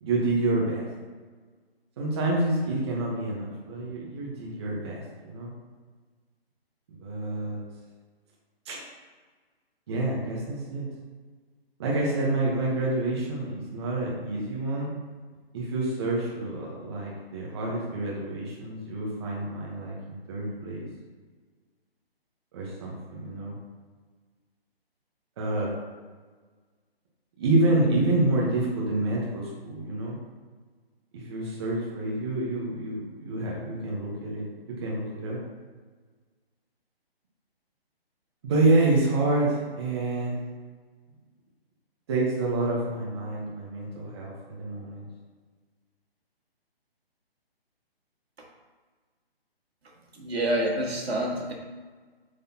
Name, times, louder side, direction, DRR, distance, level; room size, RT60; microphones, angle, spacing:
voice 1, 0.0-0.9 2.0-5.5 7.0-7.6 8.6-8.8 9.9-10.9 11.8-14.9 15.5-20.8 22.5-23.6 25.4-25.7 27.4-30.2 31.1-35.4 38.4-40.4 42.1-45.1, right 2 dB, 25° right, -4 dB, 1.1 m, -28 dB
voice 2, 50.2-51.5, right 1 dB, 75° right, -1 dB, 1.8 m, -27 dB
8.2 x 4.1 x 2.8 m, 1.4 s
hypercardioid pair, 160°, 31 cm